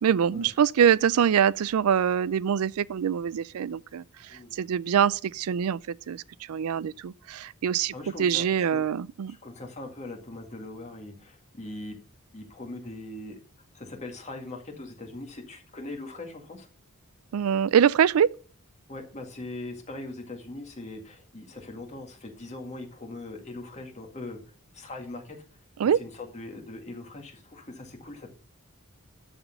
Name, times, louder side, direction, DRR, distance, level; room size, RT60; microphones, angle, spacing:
voice 1, 0.0-4.0 4.5-5.8 6.1-6.2 6.5-7.9 8.2-9.4 17.3-18.3 25.8-26.0, right 8 dB, 80° right, 0.4 m, -24 dB
voice 2, 7.9-8.9 9.3-12.0 12.3-13.4 13.7-16.7 18.9-24.4 24.7-25.4 25.9-28.3, left 2 dB, 30° left, 2.0 m, -41 dB
12.5 x 4.3 x 5.5 m
head